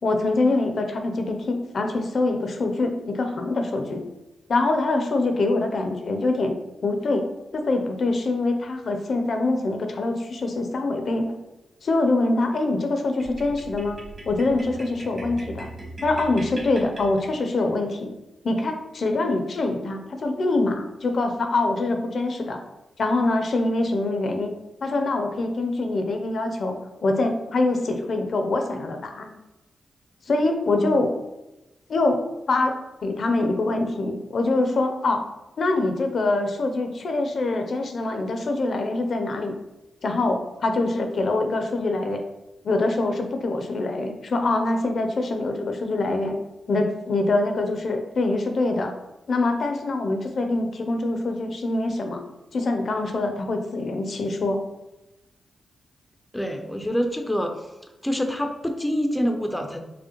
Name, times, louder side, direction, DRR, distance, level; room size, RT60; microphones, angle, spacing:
voice 1, 0.0-4.0 4.5-6.5 6.8-7.3 7.5-11.3 11.8-14.0 14.3-15.7 16.0-18.1 18.4-22.6 23.0-24.5 24.8-29.3 30.3-31.1 31.9-32.2 32.5-35.2 35.6-39.6 40.0-42.2 42.6-46.4 46.7-48.9 49.3-52.2 52.5-54.6, left 2 dB, 60° left, 5 dB, 0.5 m, -24 dB
sound 1, 13.2-17.7, right 1 dB, 35° right, 1.3 m, -40 dB
voice 2, 56.3-57.7 58.0-59.8, equal, 10° left, 5 dB, 0.4 m, -26 dB
4.8 x 2.1 x 2.9 m, 1.0 s
cardioid pair, 85°, 0 cm